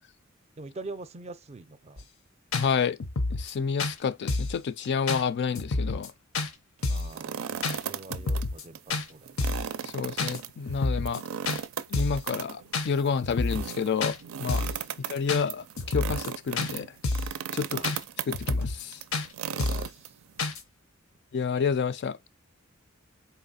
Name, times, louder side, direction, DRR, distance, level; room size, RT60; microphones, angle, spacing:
voice 1, 0.6-2.0 6.9-9.5 14.9-15.0 17.7-17.9 19.5-20.1, right 3 dB, 30° right, 0.5 m, -44 dB
sound 1, 2.0-2.1 2.5-2.7 3.0-3.5 3.8-3.9 4.3-4.6 5.1-5.2 5.6-6.1 6.3-6.5 6.8-7.1 7.6-7.8 8.1-8.6 8.9-9.1 9.4-9.7 10.2-10.4 10.7-11.2 11.5-11.6 11.9-12.2 12.7-12.9 13.2-13.7 14.0-14.2 14.5-14.8 15.3-15.4 15.8-16.3 16.6-16.7 17.0-17.4 17.8-18.0 18.3-18.9 19.1-19.3 19.6-19.9 20.4-20.6, left 3 dB, 90° left, 0.8 m, -29 dB
voice 2, 2.5-3.0 3.4-6.1 9.8-11.2 11.9-14.7 15.1-16.9 17.5-17.9 18.3-19.0 21.3-22.2, left 6 dB, 55° left, 0.4 m, -29 dB
sound 2, 6.8-8.4 8.7-8.8 9.3-20.5, right 8 dB, 90° right, 0.4 m, -36 dB
4.1 x 3.0 x 4.0 m
head